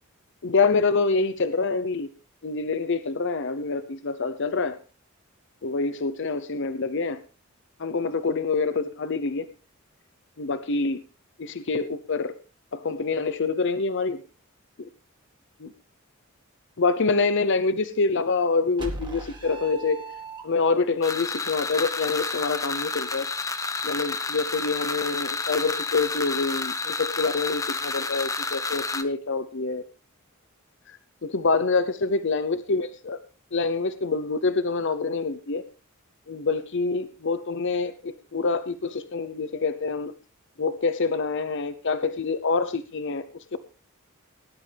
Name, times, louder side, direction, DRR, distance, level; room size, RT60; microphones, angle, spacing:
voice 1, 0.4-2.1 2.4-4.8 5.6-7.2 7.8-9.5 10.4-11.0 11.4-12.4 12.7-14.2 14.8-14.9 15.6-15.7 16.8-20.1 20.4-23.3 23.8-29.8 30.9-33.2 33.5-35.6 36.3-40.1 40.6-43.2 43.5-43.6, left 4 dB, 55° left, 12 dB, 0.7 m, -26 dB
sound 1, 18.8-20.9, right 2 dB, 20° right, 2.1 m, -37 dB
sound 2, 21.0-29.0, left 3 dB, 15° left, 0.9 m, -30 dB
18.5 x 11.0 x 3.4 m, 0.35 s
head